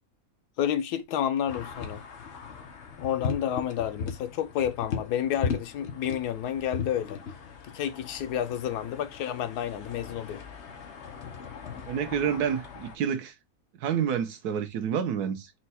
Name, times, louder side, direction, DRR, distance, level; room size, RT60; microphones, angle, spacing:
voice 1, 0.6-2.0 3.0-7.2 7.7-10.4, left 10 dB, 90° left, 1.2 m, -30 dB
sound 1, 1.5-13.0, left 6 dB, 55° left, 1.0 m, -38 dB
voice 2, 11.8-13.3 13.8-15.5, right 8 dB, 90° right, 1.3 m, -28 dB
4.5 x 2.3 x 4.1 m
omnidirectional pair, 1.6 m